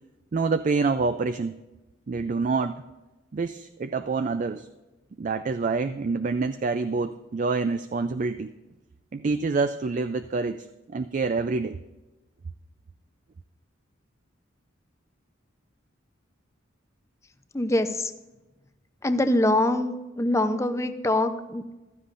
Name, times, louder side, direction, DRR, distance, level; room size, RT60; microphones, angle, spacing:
voice 1, 0.3-1.5 2.1-2.8 3.3-4.7 5.2-8.5 9.1-11.8, right 4 dB, 40° right, 10 dB, 0.4 m, -27 dB
voice 2, 17.5-18.1 19.0-21.6, left 1 dB, 15° left, 8 dB, 0.6 m, -24 dB
15.0 x 13.0 x 2.5 m, 1.1 s
head